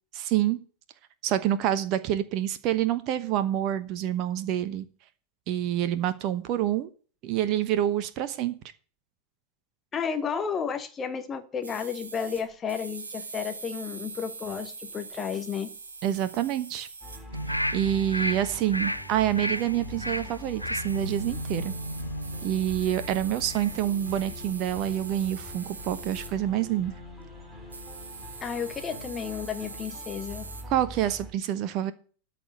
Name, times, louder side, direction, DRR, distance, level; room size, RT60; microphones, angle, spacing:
voice 1, 0.1-0.6 1.2-4.8 5.5-6.9 7.2-8.5 16.0-16.9 17.7-21.7 22.4-26.9 30.7-31.9, right 11 dB, 40° right, 13 dB, 1.0 m, -27 dB
voice 2, 9.9-15.7 28.4-30.5, left 7 dB, 20° left, 8 dB, 1.5 m, -32 dB
sound 1, 11.6-17.2 19.5-19.8 20.5-20.6 20.9-26.4 27.7-30.6, right 4 dB, 70° right, 2.2 m, -43 dB
sound 2, 17.0-31.3, left 2 dB, 5° right, 4.8 m, -43 dB
sound 3, 17.3-23.8 24.1-24.3, equal, 90° left, 0.5 m, -34 dB
13.0 x 5.2 x 8.0 m, 0.40 s
figure-of-eight pair, 90°, 0 cm